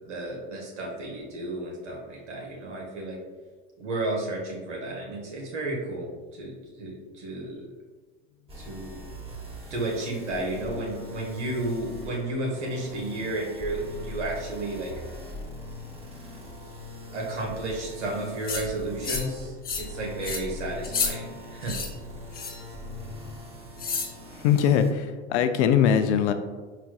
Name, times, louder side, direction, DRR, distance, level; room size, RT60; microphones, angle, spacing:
voice 1, 0.0-3.2 3.8-7.7 8.5-9.0 9.7-14.9 17.1-21.8, right 2 dB, 90° right, -2 dB, 1.3 m, -32 dB
sound 1, 8.5-24.9, left 1 dB, 15° right, 1.0 m, -41 dB
sound 2, 18.4-18.6 19.0-19.3 19.6-19.9 20.2-20.4 20.8-21.1 21.6-21.9 22.3-22.6 23.8-24.1, left 5 dB, 25° left, 0.9 m, -30 dB
voice 2, 24.3-26.3, left 8 dB, 80° left, 8 dB, 0.5 m, -22 dB
4.5 x 4.2 x 2.3 m, 1.4 s
hypercardioid pair, 85°, 34 cm